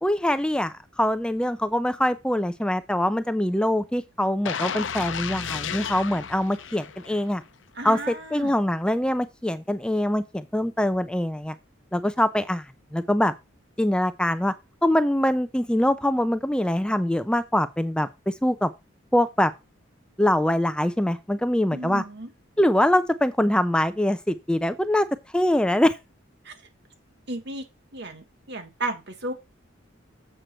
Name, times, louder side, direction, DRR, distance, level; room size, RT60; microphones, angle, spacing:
voice 1, 0.0-7.4 7.8-11.5 11.9-12.6 12.9-13.3 13.8-14.5 14.8-18.7 19.1-19.5 20.2-22.0 22.6-25.1 25.3-26.0, left 1 dB, 5° left, 0.5 m, -23 dB
sound 1, 4.4-7.4 7.8-8.0, left 7 dB, 70° left, 0.7 m, -33 dB
voice 2, 7.8-8.5 21.7-22.3 26.5-26.6 27.3-27.6 27.9-29.3, right 2 dB, 60° right, 1.8 m, -33 dB
7.7 x 6.4 x 4.4 m
head